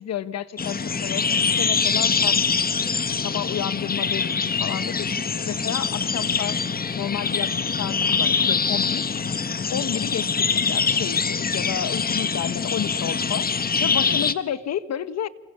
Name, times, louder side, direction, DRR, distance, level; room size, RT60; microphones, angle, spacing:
voice 1, 0.0-2.5 3.2-5.1 5.4-6.6 6.9-15.3, left 9 dB, 60° left, 1.3 m, -31 dB
sound 1, 0.6-14.3, left 5 dB, 30° left, 1.4 m, -24 dB
28.5 x 27.0 x 6.9 m
cardioid pair, 90°, 30 cm